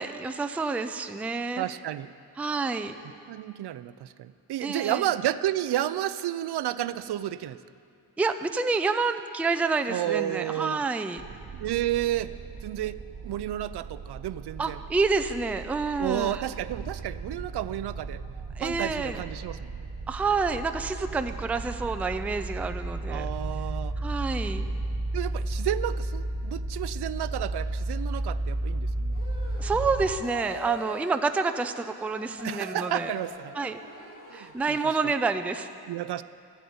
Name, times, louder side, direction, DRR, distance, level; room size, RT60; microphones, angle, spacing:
voice 1, 0.0-1.6 2.4-3.0 4.6-5.0 8.2-11.2 14.6-16.4 18.6-19.2 20.1-23.3 24.0-24.7 29.6-33.1 33.5-33.8 34.3-35.7, right 4 dB, 5° right, 8 dB, 0.3 m, -28 dB
voice 2, 1.6-2.1 3.3-7.6 9.9-10.8 11.6-12.3 12.6-13.0 13.2-14.8 16.0-18.2 18.6-19.8 23.1-24.0 25.1-29.2 32.4-33.5 34.3-34.8 35.9-36.2, right 12 dB, 75° right, 14 dB, 0.5 m, -31 dB
sound 1, 11.2-30.1, right 2 dB, 45° right, 0.9 m, -34 dB
sound 2, 29.1-35.3, equal, 30° left, 2.7 m, -43 dB
13.5 x 8.0 x 9.3 m, 2.4 s
wide cardioid pair, 160°, 40 cm